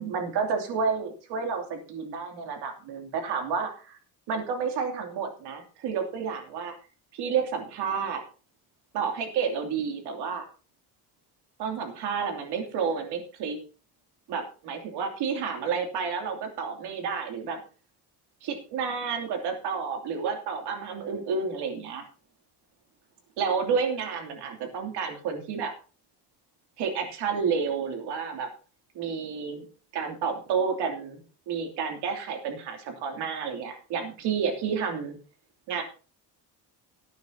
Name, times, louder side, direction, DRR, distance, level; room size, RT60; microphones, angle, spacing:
voice 1, 0.0-4.0 4.3-6.7 7.1-8.2 8.9-10.4 11.6-13.6 14.3-17.6 18.4-22.0 23.4-25.7 26.8-28.5 28.9-29.7 29.9-35.2 35.7-35.8, right 6 dB, 85° right, 4 dB, 2.8 m, -30 dB
18.0 x 9.4 x 2.8 m, 0.36 s
cardioid pair, 175°, 40 cm